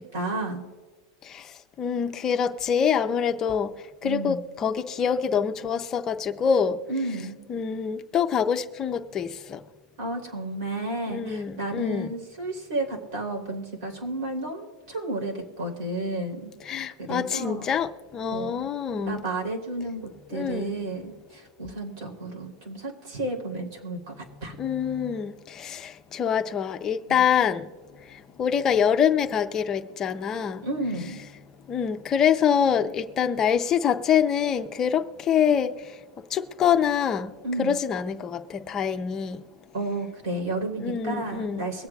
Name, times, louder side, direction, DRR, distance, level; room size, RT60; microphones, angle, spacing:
voice 1, 0.1-0.7 4.0-4.4 6.9-7.4 10.0-16.5 17.0-17.7 18.3-18.7 19.0-24.1 24.4-24.5 27.1-27.2 30.6-31.2 37.4-37.8 39.7-41.9, right 2 dB, 60° right, 3.2 m, -32 dB
voice 2, 1.8-3.7 4.0-6.8 7.5-9.6 11.1-12.1 16.7-19.2 20.3-20.7 24.6-27.7 28.4-30.6 31.7-35.7 36.3-37.3 37.6-39.4 40.8-41.7, left 7 dB, 20° left, 0.5 m, -25 dB
23.0 x 8.0 x 2.3 m
supercardioid pair, 170°, 3 cm